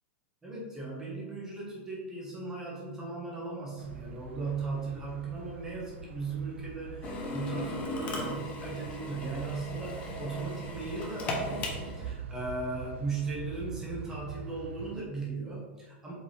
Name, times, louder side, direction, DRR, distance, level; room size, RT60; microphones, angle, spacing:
voice 1, 0.4-16.1, right 3 dB, 10° right, -5 dB, 1.6 m, -37 dB
sound 1, 3.8-15.0, right 7 dB, 75° right, 0.5 m, -44 dB
Drill, 7.0-12.1, left 2 dB, 20° left, 0.9 m, -37 dB
7.9 x 5.2 x 3.4 m, 1.3 s
supercardioid pair, 170°, 6 cm